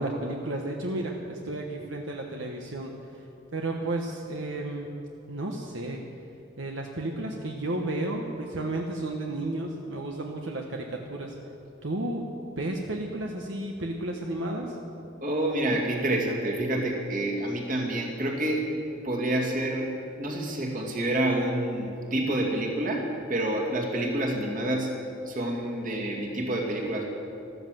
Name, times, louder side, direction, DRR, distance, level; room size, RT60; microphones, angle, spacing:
voice 1, 0.0-3.2 3.5-4.9 5.3-6.0 6.6-11.3 11.8-12.3 12.6-14.8, right 1 dB, 70° right, 1 dB, 1.2 m, -32 dB
voice 2, 15.2-18.7 19.0-25.0 25.3-27.0, right 1 dB, 45° right, 0 dB, 2.4 m, -28 dB
13.5 x 13.5 x 7.7 m, 2.7 s
head